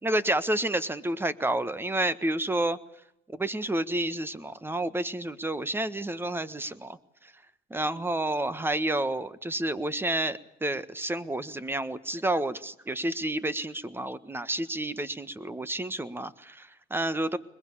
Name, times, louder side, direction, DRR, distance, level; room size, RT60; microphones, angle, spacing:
voice 1, 0.0-2.8 3.3-7.0 7.2-7.3 7.7-17.4, right 1 dB, 15° right, 15 dB, 1.4 m, -30 dB
22.5 x 21.5 x 8.6 m, 0.80 s
cardioid pair, 110°, 17 cm